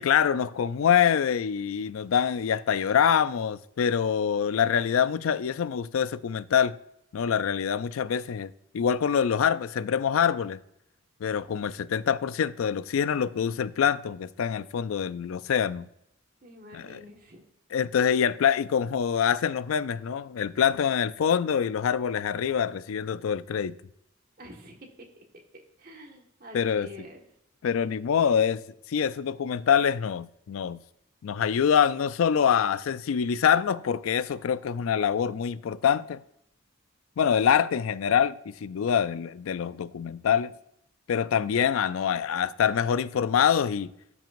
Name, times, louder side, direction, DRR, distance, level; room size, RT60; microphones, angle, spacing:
voice 1, 0.0-6.8 7.1-10.6 11.2-15.9 16.7-17.0 17.7-23.8 26.5-26.9 27.6-28.6 28.9-30.8 31.2-36.2 37.2-40.5 41.1-43.9, left 8 dB, 85° left, 0.4 m, -25 dB
voice 2, 16.4-17.4 24.4-25.1 25.3-27.2, equal, 45° right, 1.6 m, -47 dB
13.5 x 6.1 x 2.5 m
head